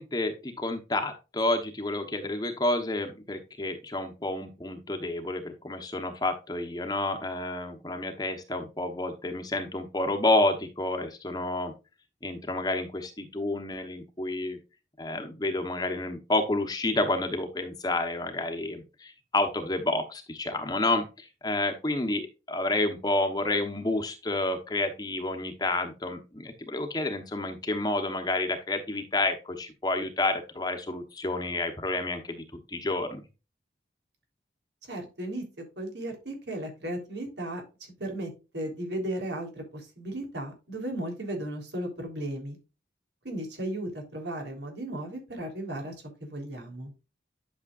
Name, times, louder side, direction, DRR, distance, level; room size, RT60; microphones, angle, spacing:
voice 1, 0.0-11.7 12.2-14.6 15.0-33.2, left 2 dB, 20° left, 4 dB, 1.0 m, -29 dB
voice 2, 34.9-37.6 38.0-42.6 43.2-45.9 46.2-46.9, right 1 dB, 80° right, 3 dB, 3.6 m, -35 dB
11.0 x 6.5 x 2.5 m, 0.29 s
head